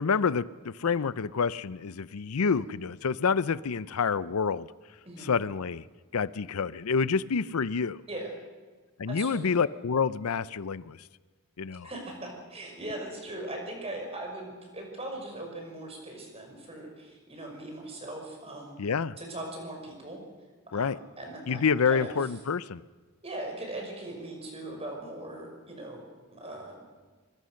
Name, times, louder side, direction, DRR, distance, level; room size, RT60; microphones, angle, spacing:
voice 1, 0.0-4.7 5.2-5.8 6.1-8.0 9.0-11.0 11.6-11.9 18.8-19.2 20.7-21.0 21.5-22.8, left 5 dB, 80° left, 18 dB, 0.6 m, -28 dB
voice 2, 9.1-9.5 11.8-18.8 19.2-20.2 20.7-21.6 21.9-22.2 23.2-26.0 26.3-26.8, right 1 dB, 25° right, 2 dB, 5.9 m, -40 dB
25.0 x 22.0 x 6.5 m, 1.4 s
head